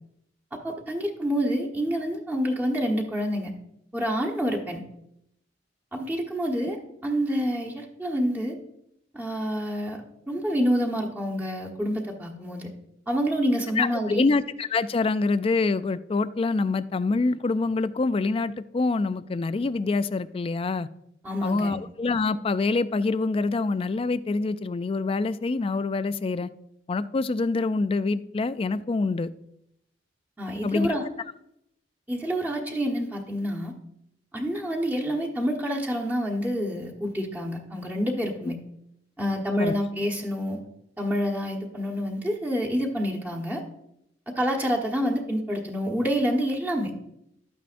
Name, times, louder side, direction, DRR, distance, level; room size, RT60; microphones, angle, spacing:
voice 1, 0.5-3.5 3.9-4.8 5.9-8.5 9.1-12.7 13.1-14.3 21.2-21.8 30.4-31.0 32.1-33.7 34.3-38.6 39.2-40.6 41.0-43.6 44.3-46.9, equal, 10° right, -2 dB, 1.2 m, -27 dB
voice 2, 13.8-20.9 21.4-26.5 26.9-29.3 30.6-31.0 39.2-39.8, left 3 dB, 30° left, 14 dB, 0.3 m, -26 dB
12.5 x 9.1 x 2.6 m, 0.79 s
head